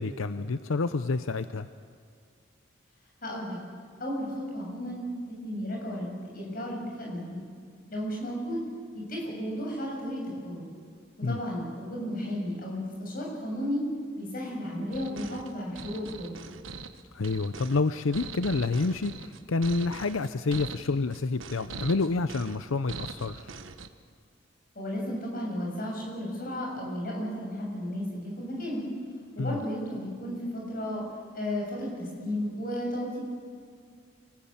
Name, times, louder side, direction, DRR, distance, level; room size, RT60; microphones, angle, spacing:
voice 1, 0.0-1.7 11.2-11.4 17.1-23.5 29.4-29.6, left 3 dB, 85° left, 12 dB, 0.6 m, -28 dB
voice 2, 3.2-3.6 4.0-7.4 7.9-8.6 8.9-10.7 11.2-13.9 14.1-16.4 24.8-28.8 29.4-31.0 31.3-33.2, equal, 45° left, -2 dB, 7.1 m, -34 dB
sound 1, 14.9-23.9, right 4 dB, 80° right, 1.2 m, -42 dB
26.5 x 19.0 x 8.8 m, 2.1 s
head